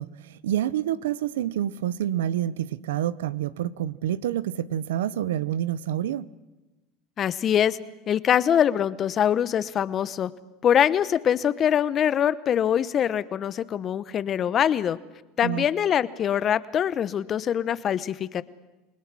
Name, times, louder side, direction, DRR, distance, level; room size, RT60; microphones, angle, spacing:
voice 1, 0.0-6.3 15.4-15.7, right 11 dB, 85° right, 0.7 m, -28 dB
voice 2, 7.2-7.8 8.1-10.3 10.6-15.0 15.4-18.4, left 9 dB, 40° left, 0.9 m, -23 dB
29.0 x 19.5 x 6.2 m
supercardioid pair, 100°, 0 cm